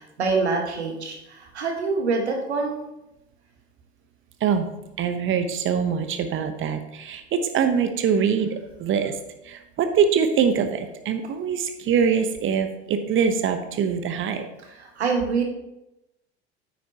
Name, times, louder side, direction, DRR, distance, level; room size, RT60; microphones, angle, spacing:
voice 1, 0.0-2.8 14.7-15.4, right 4 dB, 80° right, 2 dB, 1.7 m, -25 dB
voice 2, 5.0-9.2 9.4-14.4, right 7 dB, 35° right, 8 dB, 1.1 m, -23 dB
9.2 x 8.4 x 3.0 m, 0.92 s
figure-of-eight pair, 70°, 33 cm